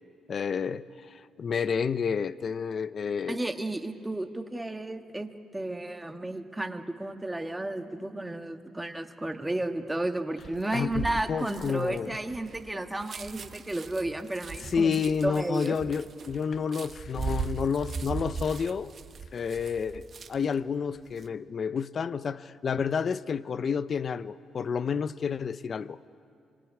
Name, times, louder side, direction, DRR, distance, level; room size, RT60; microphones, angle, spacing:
voice 1, 0.3-3.4 10.7-12.2 14.6-18.9 19.3-26.0, left 6 dB, 50° left, 15 dB, 0.6 m, -30 dB
voice 2, 3.3-15.0 15.2-15.8, right 1 dB, 10° right, 6 dB, 1.5 m, -33 dB
sound 1, 10.4-20.6 21.0-21.3, right 5 dB, 50° right, 1.3 m, -39 dB
25.0 x 20.5 x 9.8 m, 2.4 s
cardioid pair, 90°, 0 cm